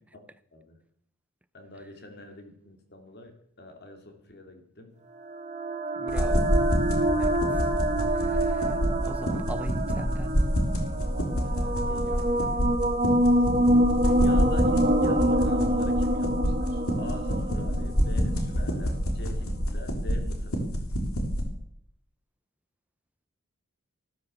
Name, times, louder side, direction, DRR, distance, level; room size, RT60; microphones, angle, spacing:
voice 1, 1.5-4.9 11.4-12.3 13.9-20.8, left 2 dB, 50° left, 2.8 m, -45 dB
sound 1, 5.2-18.8, right 1 dB, 35° right, 1.5 m, -26 dB
voice 2, 6.0-6.5 7.2-7.4 8.2-8.7 9.0-10.4, right 1 dB, 5° right, 0.6 m, -39 dB
sound 2, 6.1-21.4, equal, 90° left, 3.4 m, -28 dB
13.0 x 13.0 x 7.0 m
head